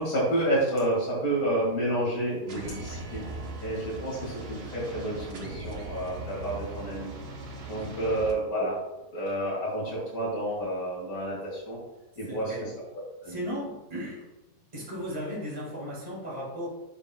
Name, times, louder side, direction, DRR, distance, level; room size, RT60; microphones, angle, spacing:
voice 1, 0.0-3.2 3.6-7.1 7.7-8.8 9.1-11.8 12.2-12.7 13.2-13.4, right 1 dB, 55° left, -5 dB, 2.3 m, -29 dB
sound 1, 2.5-8.3, right 2 dB, 45° right, 1.0 m, -39 dB
voice 2, 12.3-12.7 13.2-14.2 14.7-16.7, equal, 20° right, -5 dB, 2.3 m, -35 dB
9.8 x 6.0 x 2.2 m, 1.0 s
omnidirectional pair, 1.8 m